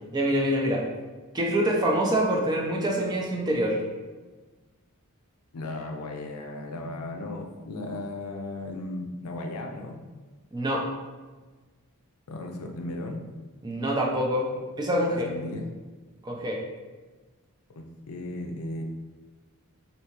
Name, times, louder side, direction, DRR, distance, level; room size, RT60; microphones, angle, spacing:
voice 1, 0.1-0.8 1.3-3.8 10.5-10.9 13.6-14.5 14.8-15.1 16.2-16.6, right 1 dB, 20° right, -1 dB, 0.4 m, -25 dB
voice 2, 5.5-9.9 12.3-13.2 15.1-15.7 17.8-18.8, left 2 dB, 80° left, 2 dB, 0.5 m, -36 dB
3.4 x 2.7 x 2.9 m, 1.3 s
head